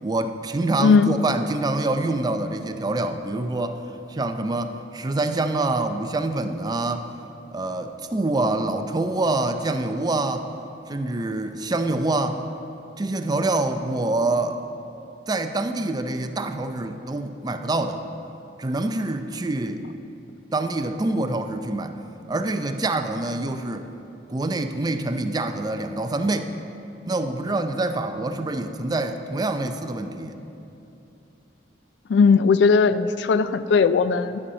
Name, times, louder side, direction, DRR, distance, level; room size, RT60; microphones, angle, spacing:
voice 1, 0.0-3.8 4.1-7.1 7.5-10.5 10.9-12.4 13.0-14.6 15.3-18.0 18.6-19.8 20.5-22.0 22.3-23.9 24.3-26.5 27.1-30.4, right 2 dB, 25° right, 8 dB, 0.4 m, -26 dB
voice 2, 0.8-1.1 32.1-34.4, left 5 dB, 75° left, 13 dB, 0.3 m, -18 dB
11.0 x 5.6 x 6.3 m, 2.8 s
head